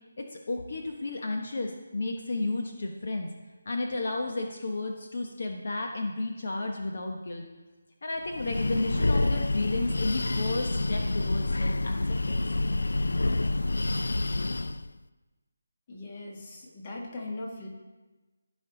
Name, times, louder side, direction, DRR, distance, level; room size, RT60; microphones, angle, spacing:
voice 1, 0.2-3.3 3.7-7.4 8.0-12.5, left 2 dB, 55° left, 2 dB, 1.0 m, -32 dB
Breathing, 8.3-14.9, left 2 dB, 85° left, 0.4 m, -28 dB
voice 2, 15.9-17.7, left 2 dB, 25° left, -1 dB, 1.6 m, -39 dB
16.0 x 5.4 x 3.9 m, 1.2 s
figure-of-eight pair, 170°, 0 cm